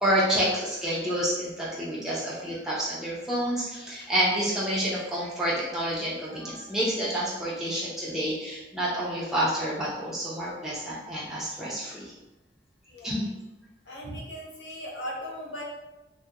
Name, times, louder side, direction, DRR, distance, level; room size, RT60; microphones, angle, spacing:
voice 1, 0.0-12.1 13.0-13.2, right 1 dB, 5° right, -8 dB, 0.4 m, -28 dB
voice 2, 13.9-15.6, equal, 75° left, -3 dB, 0.6 m, -38 dB
2.7 x 2.1 x 2.3 m, 1.1 s
head